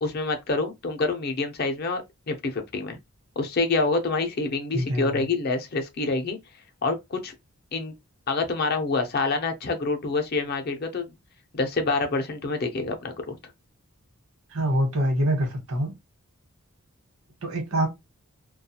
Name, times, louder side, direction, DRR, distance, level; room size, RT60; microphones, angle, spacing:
voice 1, 0.0-3.0 3.4-6.4 6.8-7.3 7.7-7.9 8.3-11.1 11.5-13.4, left 3 dB, 45° left, 0.5 m, -27 dB
voice 2, 4.7-5.2 14.5-15.9 17.4-17.9, right 1 dB, 75° right, 1.0 m, -25 dB
2.4 x 2.2 x 2.7 m
head